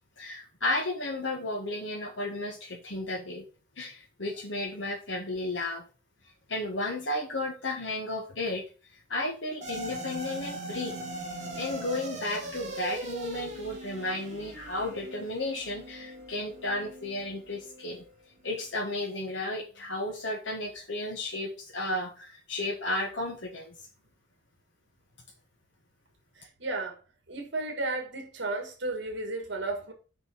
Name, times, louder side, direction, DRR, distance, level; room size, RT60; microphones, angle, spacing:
voice 1, 0.2-3.4 3.8-5.8 6.2-11.0 11.5-18.0 18.4-23.9, left 2 dB, 70° left, 1.4 m, -33 dB
sound 1, 9.6-18.1, right 1 dB, 35° right, 2.3 m, -40 dB
voice 2, 26.3-27.0 27.3-29.9, right 2 dB, 65° right, 1.7 m, -33 dB
6.1 x 5.2 x 6.2 m
head